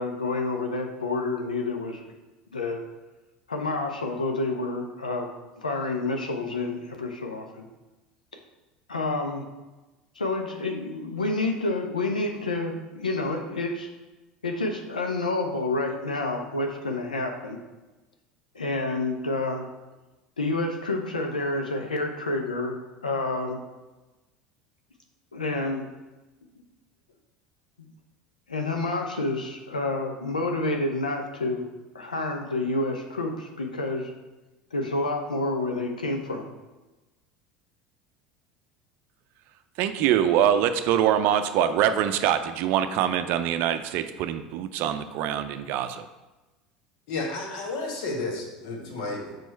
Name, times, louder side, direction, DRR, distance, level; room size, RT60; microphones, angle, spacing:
voice 1, 0.0-2.0 2.5-2.8 3.5-5.3 5.6-7.7 8.9-9.5 10.2-13.9 14.4-17.6 18.5-19.7 20.4-22.7 23.0-23.6 25.3-25.8 28.5-31.7 31.9-34.1 34.7-36.5, left 2 dB, 85° left, 3 dB, 0.7 m, -29 dB
voice 2, 39.8-46.0, right 10 dB, 55° right, 10 dB, 0.5 m, -24 dB
voice 3, 47.1-49.4, left 2 dB, 60° left, 1 dB, 1.6 m, -32 dB
6.1 x 4.9 x 4.5 m, 1.1 s
figure-of-eight pair, 70°, 4 cm